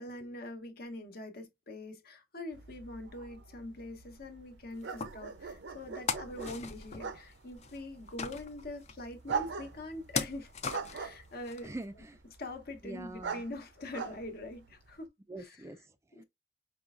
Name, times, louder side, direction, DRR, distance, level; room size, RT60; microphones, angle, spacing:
voice 1, 0.0-10.5 10.9-11.7 12.4-15.1 15.4-15.6 16.2-16.3, left 2 dB, 55° left, 1.0 m, -43 dB
sound 1, 2.5-15.1, right 5 dB, 70° right, 0.6 m, -43 dB
sound 2, 4.8-11.8, left 5 dB, 35° left, 0.5 m, -39 dB
voice 2, 11.6-12.2 12.8-13.4 15.3-16.2, right 2 dB, 15° right, 0.4 m, -44 dB
5.2 x 3.2 x 2.4 m
head